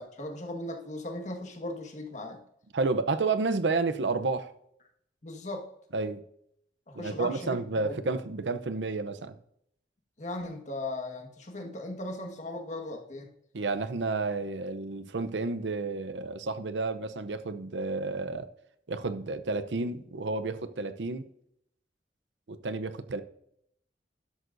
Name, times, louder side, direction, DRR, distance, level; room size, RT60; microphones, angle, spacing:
voice 1, 0.0-2.4 5.2-5.7 6.9-8.2 10.2-13.3, left 1 dB, 40° left, 1.6 m, -38 dB
voice 2, 2.7-4.5 5.9-6.2 6.9-9.3 13.5-18.5 18.9-21.3 22.5-23.2, right 3 dB, 85° right, 0.7 m, -31 dB
12.5 x 11.0 x 2.6 m
head